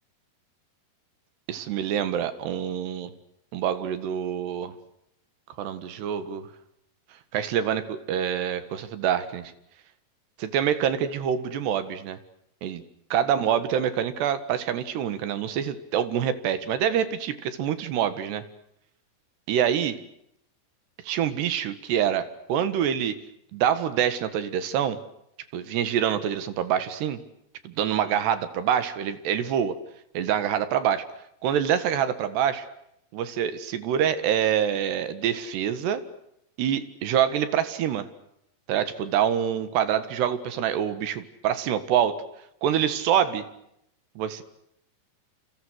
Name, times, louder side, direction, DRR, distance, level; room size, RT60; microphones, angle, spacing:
voice 1, 1.5-3.1 3.5-4.7 5.6-6.5 7.3-9.5 10.4-12.2 12.6-12.8 13.1-18.4 19.5-20.0 21.0-23.2 23.5-25.0 25.5-27.2 27.6-29.8 30.2-31.0 31.4-32.7 33.1-36.0 36.6-38.1 38.7-42.2 42.6-43.5 44.2-44.4, right 9 dB, 75° right, 11 dB, 3.8 m, -26 dB
29.0 x 28.5 x 6.5 m, 0.77 s
omnidirectional pair, 4.9 m